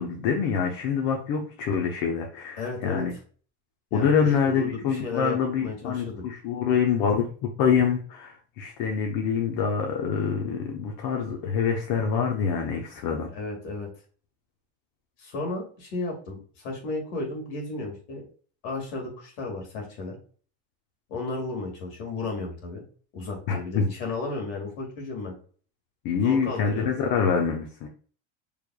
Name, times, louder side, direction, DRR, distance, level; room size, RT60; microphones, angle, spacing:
voice 1, 0.0-3.1 3.9-13.3 23.5-23.9 26.0-27.9, left 6 dB, 60° left, 2 dB, 1.0 m, -25 dB
voice 2, 2.6-3.1 3.9-6.2 13.3-13.9 15.2-18.3 18.6-20.2 21.1-22.8 23.1-25.4 26.2-26.9, left 3 dB, 85° left, 0 dB, 2.1 m, -34 dB
5.0 x 3.4 x 2.3 m, 0.42 s
supercardioid pair, 100°, 39 cm